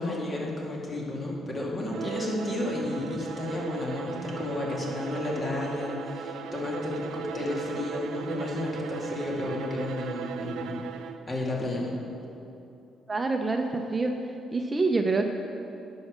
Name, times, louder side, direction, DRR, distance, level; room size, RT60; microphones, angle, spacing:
voice 1, 0.0-10.8 11.3-12.0, left 1 dB, 30° left, -3 dB, 2.3 m, -32 dB
Bowed string instrument, 1.8-11.3, right 7 dB, 85° right, 0.6 m, -38 dB
voice 2, 13.1-14.1 14.5-15.3, right 3 dB, 25° right, 4 dB, 0.6 m, -26 dB
10.5 x 5.6 x 6.7 m, 2.7 s
cardioid pair, 90°, 0 cm